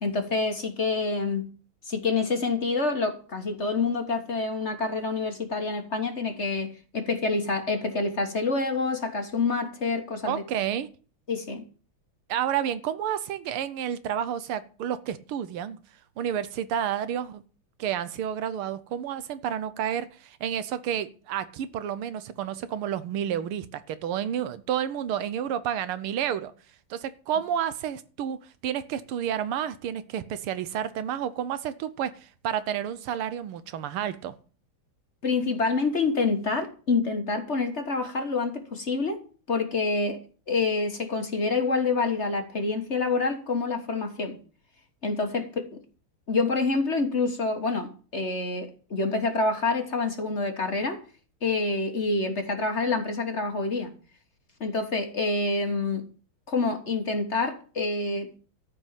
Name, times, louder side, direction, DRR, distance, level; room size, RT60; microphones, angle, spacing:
voice 1, 0.0-1.5 1.8-10.4 11.3-11.6 35.2-39.2 39.5-40.2 40.5-44.4 45.0-45.8 46.3-51.0 51.4-53.9 54.6-56.0 56.5-58.3, left 3 dB, 35° left, 1.5 m, -27 dB
voice 2, 10.2-10.9 12.3-15.8 16.2-17.4 17.8-26.5 26.9-28.4 28.6-34.3, right 9 dB, 85° right, 1.8 m, -30 dB
13.5 x 5.4 x 9.0 m
omnidirectional pair, 2.3 m